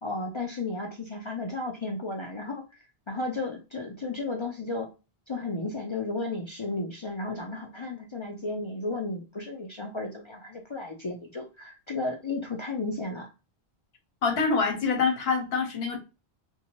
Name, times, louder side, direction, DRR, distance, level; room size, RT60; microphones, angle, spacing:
voice 1, 0.0-4.9 5.3-13.3, left 2 dB, 50° left, 0.3 m, -34 dB
voice 2, 14.2-16.0, left 4 dB, 70° left, 1.0 m, -25 dB
2.7 x 2.2 x 2.8 m
omnidirectional pair, 1.1 m